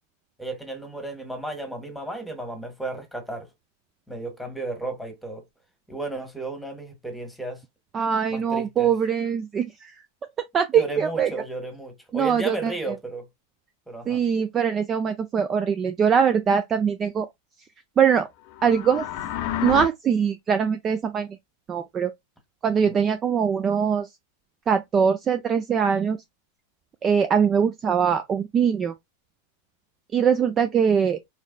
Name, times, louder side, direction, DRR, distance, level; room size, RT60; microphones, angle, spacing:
voice 1, 0.4-3.5 4.1-5.4 5.9-7.6 8.3-8.9 10.7-13.2 13.9-14.2 22.8-23.0, right 2 dB, ahead, 1.5 m, -33 dB
voice 2, 7.9-9.9 10.5-11.3 12.1-12.7 14.1-17.3 18.0-18.3 18.6-19.1 19.6-21.3 21.7-22.1 22.6-24.1 24.7-26.2 27.0-28.9 30.1-31.2, right 7 dB, 25° right, 0.4 m, -22 dB
sound 1, 18.5-19.9, left 11 dB, 45° left, 0.6 m, -30 dB
4.8 x 3.1 x 2.3 m
figure-of-eight pair, 90°, 0 cm